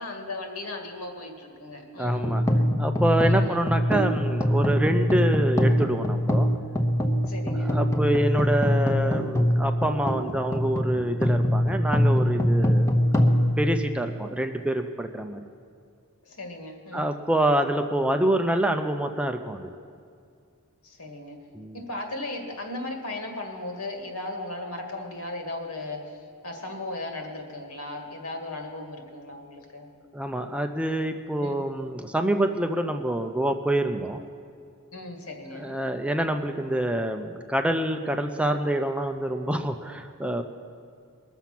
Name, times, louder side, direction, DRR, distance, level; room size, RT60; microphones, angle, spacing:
voice 1, 0.0-2.3 3.3-3.6 7.2-7.8 16.2-17.1 20.8-21.4 21.7-29.9 31.4-31.7 34.9-35.8, left 2 dB, 75° left, 3 dB, 2.0 m, -36 dB
sound 1, 2.0-14.4, equal, 15° left, 0.9 m, -23 dB
voice 2, 2.0-2.4 2.8-6.5 7.5-13.0 13.6-15.4 16.9-19.7 21.5-21.8 30.1-34.2 35.5-40.4, right 1 dB, 5° right, 5 dB, 0.5 m, -26 dB
21.5 x 7.1 x 6.0 m, 2.3 s
head